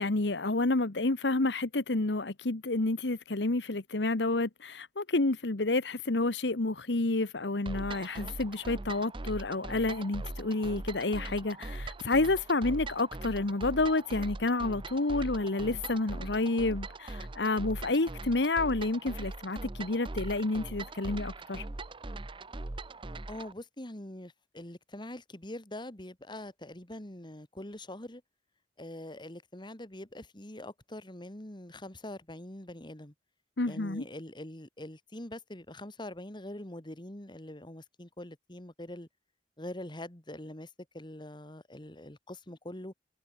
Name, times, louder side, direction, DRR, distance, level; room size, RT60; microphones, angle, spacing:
voice 1, 0.0-21.6 33.6-34.0, left 2 dB, 70° left, 1.2 m, -29 dB
sound 1, 7.7-23.5, right 2 dB, 30° right, 0.8 m, -41 dB
voice 2, 23.3-28.2 28.8-33.1 33.7-39.1 39.6-40.7 40.9-42.9, left 1 dB, 25° left, 2.4 m, -44 dB
head